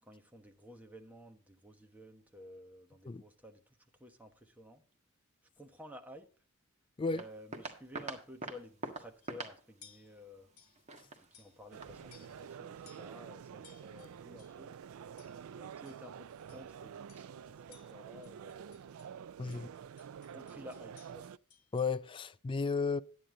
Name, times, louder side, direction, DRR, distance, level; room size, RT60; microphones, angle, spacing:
voice 1, 0.0-4.8 5.6-6.3 7.1-10.5 11.1-14.8 15.5-18.8 19.4-19.8 20.3-21.3, equal, 10° right, 1.1 m, -53 dB
sound 1, 7.2-12.6, right 2 dB, 30° right, 1.5 m, -46 dB
sound 2, 9.2-9.4 9.8-10.2 10.6-10.8 11.3-11.8 12.1-12.5 12.8-13.2 13.6-14.6 15.2-15.5 15.8-16.1 16.5-16.7 17.1-17.4 17.7-19.1 19.5-22.0, left 7 dB, 85° left, 1.7 m, -62 dB
sound 3, 11.7-21.4, right 7 dB, 75° right, 0.4 m, -48 dB
voice 2, 21.7-23.0, left 4 dB, 25° left, 0.3 m, -33 dB
10.0 x 9.3 x 3.8 m
head